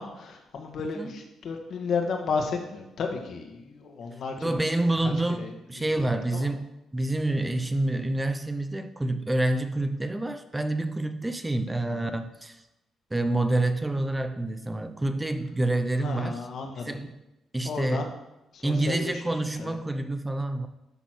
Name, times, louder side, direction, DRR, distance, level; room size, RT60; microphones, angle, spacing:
voice 1, 0.0-4.6 5.4-5.5 5.8-6.4 11.9-12.1 16.0-16.9 17.6-18.1 18.5-19.3 19.6-19.7, left 5 dB, 65° left, 3 dB, 1.6 m, -33 dB
voice 2, 0.8-1.1 4.4-12.6 13.1-16.5 16.7-17.1 17.5-18.1 18.6-20.7, right 2 dB, 15° right, 9 dB, 0.6 m, -28 dB
11.0 x 4.2 x 6.2 m, 0.93 s
cardioid pair, 90°, 0 cm